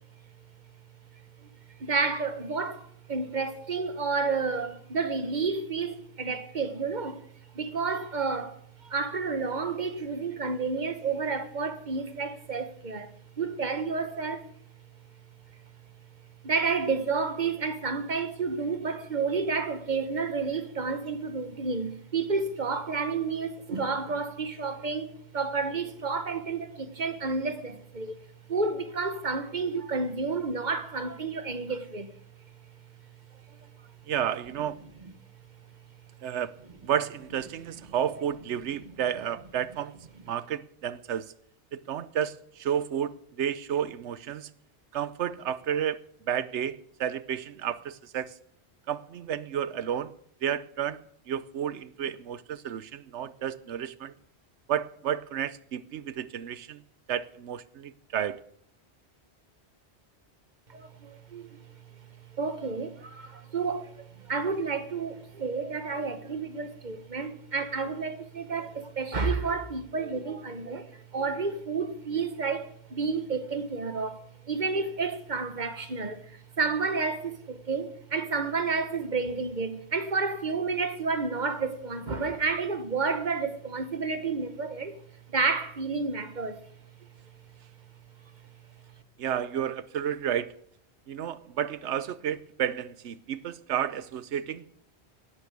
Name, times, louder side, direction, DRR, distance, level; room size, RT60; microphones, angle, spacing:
voice 1, 1.8-7.2 7.5-14.4 16.4-28.2 28.5-32.1 35.0-35.1 60.7-61.5 62.4-85.0 85.3-86.6, right 4 dB, 45° right, 1.4 m, -30 dB
voice 2, 34.1-34.8 36.2-36.5 36.8-39.9 40.3-41.3 41.7-44.5 44.9-46.0 46.3-48.4 48.9-50.1 50.4-54.1 54.7-56.8 57.1-58.4 89.2-90.5 91.1-94.8, right 9 dB, 90° right, 1.0 m, -31 dB
11.0 x 9.9 x 8.2 m
omnidirectional pair, 1.1 m